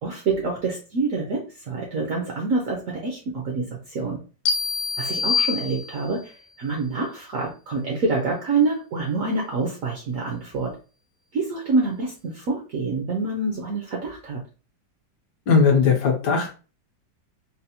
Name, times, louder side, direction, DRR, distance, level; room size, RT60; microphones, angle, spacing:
voice 1, 0.0-4.2 5.0-10.7 11.3-14.4, right 3 dB, 70° right, 0 dB, 0.8 m, -26 dB
sound 1, 4.5-6.3, left 6 dB, 90° left, 1.3 m, -25 dB
voice 2, 15.5-16.5, left 5 dB, 70° left, 2 dB, 1.2 m, -18 dB
4.1 x 2.0 x 2.7 m, 0.35 s
omnidirectional pair, 2.0 m